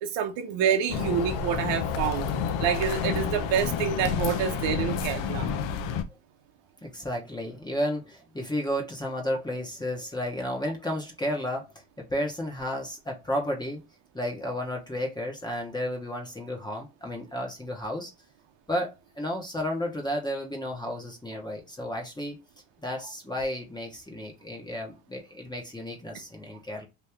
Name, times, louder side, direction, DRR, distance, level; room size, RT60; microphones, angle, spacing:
voice 1, 0.0-2.3 2.6-5.5, right 8 dB, 70° right, 0.9 m, -27 dB
sound 1, 0.9-6.0, left 6 dB, 70° left, 0.7 m, -29 dB
voice 2, 6.8-11.7 12.0-13.8 14.1-18.1 18.7-22.4 22.8-26.9, equal, 10° left, 0.9 m, -32 dB
3.0 x 2.7 x 3.4 m
cardioid pair, 115°, 46 cm